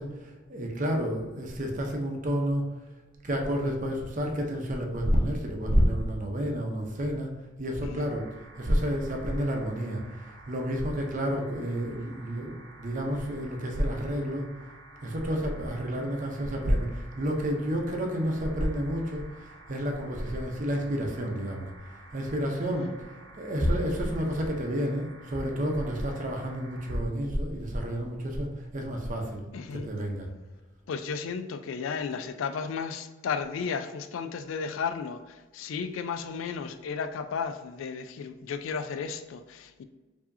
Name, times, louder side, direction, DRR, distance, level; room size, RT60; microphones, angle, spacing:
voice 1, 0.0-2.7 3.2-7.3 7.6-8.3 8.6-14.4 15.0-21.7 22.1-22.9 23.4-29.4 29.7-30.3, equal, 40° right, 2 dB, 0.6 m, -29 dB
sound 1, 8.1-27.0, right 2 dB, 90° right, 1.0 m, -51 dB
voice 2, 29.5-29.9 30.9-39.8, left 6 dB, 75° left, 9 dB, 0.3 m, -34 dB
4.6 x 2.8 x 2.6 m, 1.2 s
head